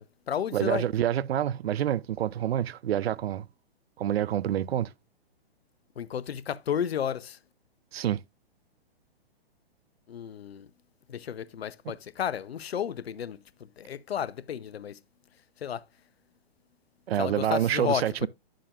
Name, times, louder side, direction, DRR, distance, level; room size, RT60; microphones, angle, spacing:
voice 1, 0.0-0.8 6.0-7.4 10.1-10.7 11.1-13.4 13.8-15.0 15.6-15.8 17.2-18.3, left 9 dB, 75° left, 0.7 m, -32 dB
voice 2, 0.5-3.5 4.0-4.9 7.9-8.2 17.1-18.3, right 11 dB, 75° right, 0.5 m, -27 dB
10.0 x 7.6 x 2.4 m
hypercardioid pair, 125°, 31 cm